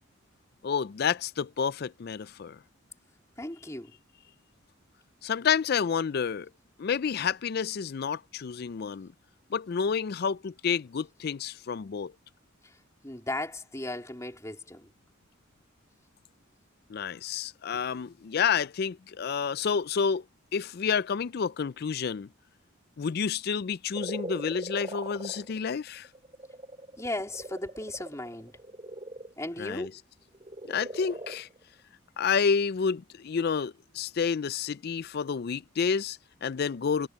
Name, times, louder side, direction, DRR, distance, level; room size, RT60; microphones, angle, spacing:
voice 1, 0.6-2.6 5.2-6.5 6.8-9.1 9.5-12.1 16.9-20.2 20.5-22.3 23.0-26.1 29.6-29.9 30.6-31.5 32.2-37.1, left 6 dB, 50° left, 0.4 m, -29 dB
voice 2, 3.4-3.9 12.6-12.7 13.0-14.9 27.0-28.5 29.4-30.0, left 1 dB, 15° left, 3.4 m, -36 dB
sound 1, 23.9-29.3 30.3-31.6, right 1 dB, 30° right, 4.4 m, -41 dB
head